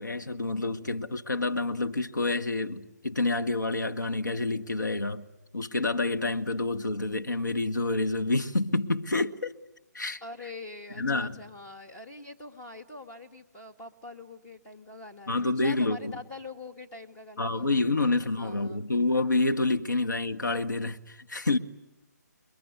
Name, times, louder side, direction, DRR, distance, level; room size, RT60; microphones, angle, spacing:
voice 1, 0.0-5.2 5.5-9.5 9.9-10.2 11.0-11.4 15.3-16.1 17.4-21.6, left 2 dB, 90° left, 1.9 m, -28 dB
voice 2, 10.2-17.7 18.0-18.8 21.3-21.5, left 2 dB, 15° left, 2.1 m, -44 dB
29.5 x 23.5 x 8.3 m
figure-of-eight pair, 150°, 10 cm